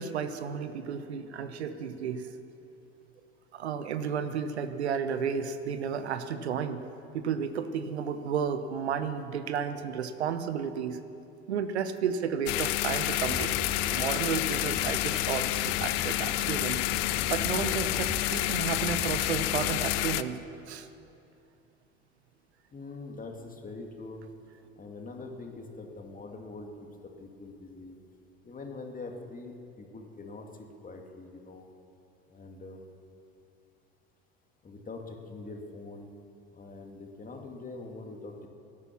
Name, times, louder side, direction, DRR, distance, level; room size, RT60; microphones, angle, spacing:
voice 1, 0.0-2.3 3.5-6.9 7.1-11.0 11.5-16.8 17.3-20.4 20.7-20.9, right 7 dB, 85° right, 10 dB, 0.8 m, -32 dB
sound 1, 12.5-20.2, left 17 dB, 65° left, 0.6 m, -29 dB
sound 2, 13.2-20.0, right 1 dB, 5° right, 0.4 m, -43 dB
voice 2, 22.7-24.2 24.8-28.0 28.4-31.7 32.3-32.8 34.6-36.1 36.5-38.5, left 3 dB, 25° left, 3 dB, 2.1 m, -43 dB
17.0 x 9.7 x 7.1 m, 2.7 s
hypercardioid pair, 75°, 32 cm